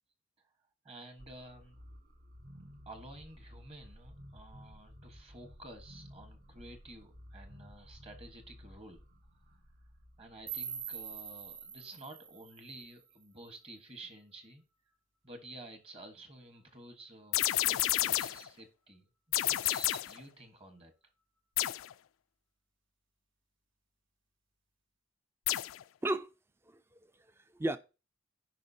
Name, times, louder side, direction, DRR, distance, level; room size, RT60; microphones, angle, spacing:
voice 1, 0.8-1.8 2.8-9.0 10.2-14.6 15.2-20.9, right 2 dB, 30° right, 1.3 m, -51 dB
sound 1, 1.2-12.1, equal, 45° right, 0.9 m, -55 dB
sound 2, 10.5-13.5, right 8 dB, 70° right, 1.7 m, -44 dB
sound 3, 17.3-18.5 19.3-20.2 21.6-21.9 25.5-25.8, left 16 dB, 80° left, 0.3 m, -30 dB
voice 2, 26.0-26.3 26.7-27.8, right 1 dB, 10° right, 0.4 m, -35 dB
15.5 x 5.2 x 2.7 m
head